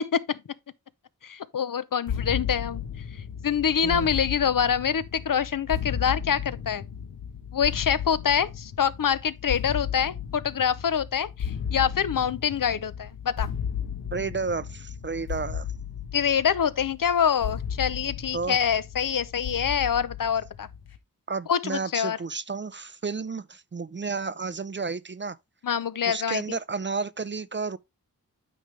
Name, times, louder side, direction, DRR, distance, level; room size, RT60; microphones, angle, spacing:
voice 1, 1.2-2.8 3.4-6.8 7.5-13.5 16.1-20.7 21.5-22.2 25.6-26.6, left 8 dB, 60° left, 0.7 m, -25 dB
sound 1, 2.1-21.0, left 8 dB, 80° left, 1.1 m, -35 dB
voice 2, 14.1-15.7 18.3-18.6 21.3-25.4 26.1-27.8, right 4 dB, 30° right, 0.5 m, -32 dB
9.2 x 5.3 x 3.2 m
cardioid pair, 50°, 37 cm